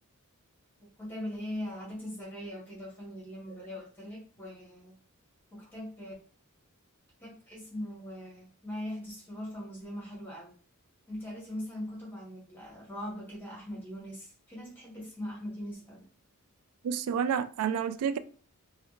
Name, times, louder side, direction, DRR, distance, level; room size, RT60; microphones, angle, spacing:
voice 1, 1.0-4.9 5.5-6.1 7.2-10.5 11.1-16.1, left 1 dB, 10° left, 1.4 m, -41 dB
voice 2, 16.8-18.2, right 7 dB, 85° right, 0.3 m, -29 dB
3.2 x 2.3 x 3.0 m
head